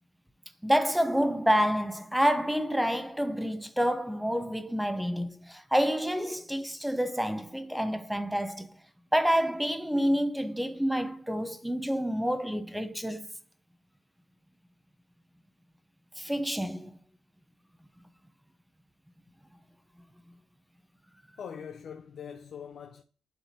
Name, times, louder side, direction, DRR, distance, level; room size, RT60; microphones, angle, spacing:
voice 1, 0.6-8.7 9.1-13.3 16.2-16.9, equal, 5° right, 0.7 m, -28 dB
voice 2, 21.4-23.0, left 7 dB, 60° left, 0.5 m, -42 dB
10.0 x 3.5 x 2.8 m
cardioid pair, 90°, 0 cm